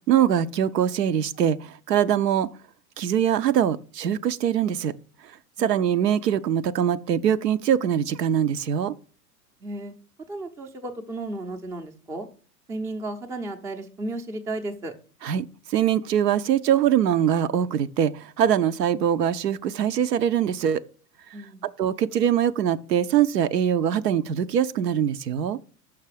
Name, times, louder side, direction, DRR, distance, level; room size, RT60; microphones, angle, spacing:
voice 1, 0.1-1.6 1.9-2.5 3.0-4.9 5.6-9.0 15.2-15.4 15.7-20.8 21.8-25.6, right 9 dB, 85° right, 0.6 m, -22 dB
voice 2, 9.6-9.9 10.3-12.3 12.7-14.9 21.3-21.6, right 2 dB, 5° right, 0.4 m, -34 dB
5.9 x 5.8 x 4.8 m
hypercardioid pair, 100°, 48 cm